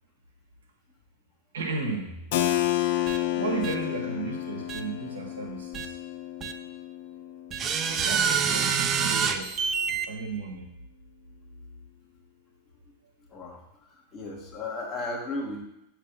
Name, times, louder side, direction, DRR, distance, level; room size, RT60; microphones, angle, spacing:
voice 1, 1.5-2.3 3.3-6.0 7.9-9.5 9.9-10.7, right 4 dB, 65° right, 2 dB, 1.1 m, -34 dB
Keyboard (musical), 2.3-7.9, left 13 dB, 50° left, 0.5 m, -30 dB
sound 1, 3.1-3.2 3.6-3.7 4.7-4.8 5.7-5.9 6.4-6.5 7.5-10.1, right 6 dB, 30° right, 0.4 m, -26 dB
voice 2, 13.3-13.6 14.1-15.6, left 2 dB, 25° left, 0 dB, 1.3 m, -34 dB
6.6 x 3.1 x 5.3 m, 0.86 s
figure-of-eight pair, 90°, 0 cm